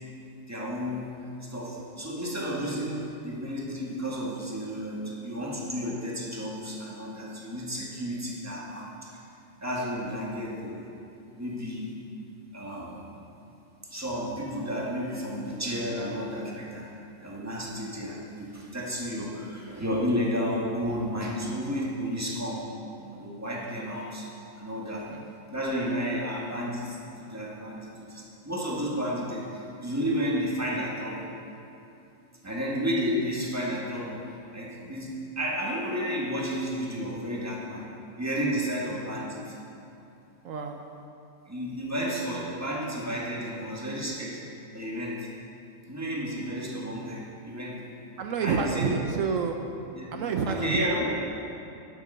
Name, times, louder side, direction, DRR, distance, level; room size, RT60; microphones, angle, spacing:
voice 1, 0.5-9.2 9.6-10.9 11.4-11.9 12.5-13.1 13.9-16.9 17.2-22.6 23.0-24.3 24.5-25.1 25.5-31.3 32.4-37.9 38.2-39.6 41.5-44.4 44.7-45.3 45.9-47.8 48.4-49.0 50.0-50.1 50.5-51.1, equal, 10° right, -4 dB, 1.8 m, -32 dB
voice 2, 40.4-40.8 48.2-49.6 50.1-50.9, right 5 dB, 75° right, 4 dB, 1.1 m, -28 dB
12.0 x 8.5 x 5.7 m, 2.7 s
omnidirectional pair, 1.4 m